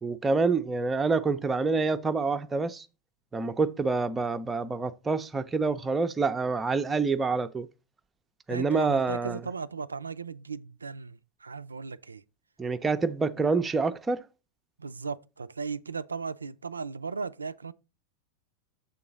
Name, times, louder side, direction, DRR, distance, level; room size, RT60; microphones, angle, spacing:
voice 1, 0.0-2.8 3.3-7.7 8.5-9.4 12.6-14.2, right 4 dB, 15° right, 0.4 m, -27 dB
voice 2, 8.5-12.2 14.8-17.7, right 5 dB, 75° right, 0.3 m, -36 dB
6.9 x 3.8 x 5.3 m
figure-of-eight pair, 90°, 0 cm